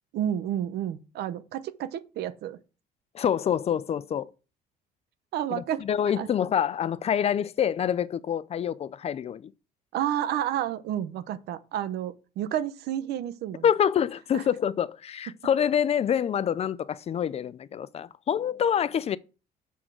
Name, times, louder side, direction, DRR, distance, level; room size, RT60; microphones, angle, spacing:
voice 1, 0.1-2.6 5.3-5.8 6.2-6.3 9.9-13.6 14.3-14.4, right 11 dB, 75° right, 0.7 m, -30 dB
voice 2, 3.1-4.3 5.5-9.5 13.6-19.2, left 8 dB, 40° left, 0.4 m, -26 dB
6.9 x 3.7 x 6.1 m
cardioid pair, 110°, 17 cm